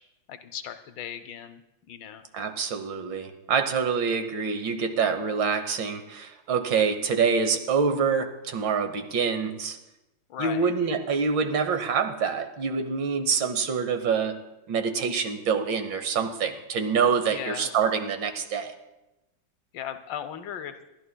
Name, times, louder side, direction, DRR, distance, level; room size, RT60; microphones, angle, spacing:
voice 1, 0.3-1.6 1.9-2.3 10.3-10.7 17.3-17.7 19.7-20.8, left 9 dB, 70° left, 9 dB, 1.3 m, -37 dB
voice 2, 2.3-9.8 10.4-14.4 14.7-18.7, right 5 dB, 70° right, 8 dB, 1.6 m, -26 dB
27.0 x 11.5 x 2.2 m, 0.96 s
omnidirectional pair, 2.2 m